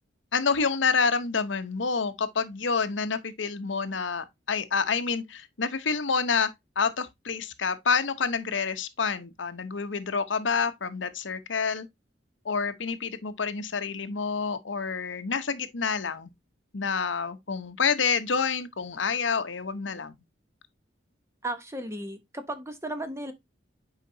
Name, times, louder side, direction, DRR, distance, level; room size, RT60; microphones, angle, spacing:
voice 1, 0.3-6.5 6.8-11.9 12.4-16.3 16.7-20.2, left 5 dB, 75° left, 0.9 m, -28 dB
voice 2, 21.4-23.3, right 1 dB, 15° right, 0.9 m, -35 dB
8.4 x 4.9 x 2.7 m
head